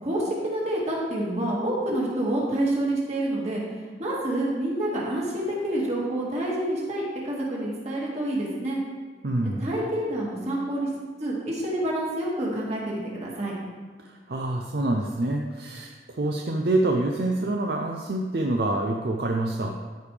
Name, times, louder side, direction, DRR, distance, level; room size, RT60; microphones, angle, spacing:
voice 1, 0.0-3.6 4.0-8.8 9.4-10.9 11.2-13.5, right 1 dB, 40° right, -5 dB, 2.1 m, -28 dB
voice 2, 9.2-9.7 14.0-19.8, right 2 dB, 60° right, 1 dB, 0.6 m, -26 dB
13.5 x 5.1 x 3.4 m, 1.5 s
head